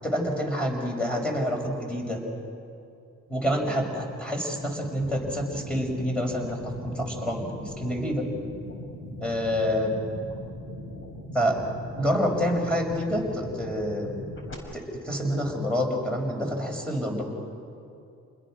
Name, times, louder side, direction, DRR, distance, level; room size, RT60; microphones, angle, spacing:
voice 1, 0.0-2.2 3.3-8.3 9.2-10.0 11.3-11.6 12.0-14.2 14.7-17.2, equal, 5° left, 0 dB, 6.2 m, -27 dB
sound 1, 4.5-14.5, left 1 dB, 40° left, 5.5 m, -40 dB
29.5 x 21.0 x 6.5 m, 2.6 s
cardioid pair, 90°, 30 cm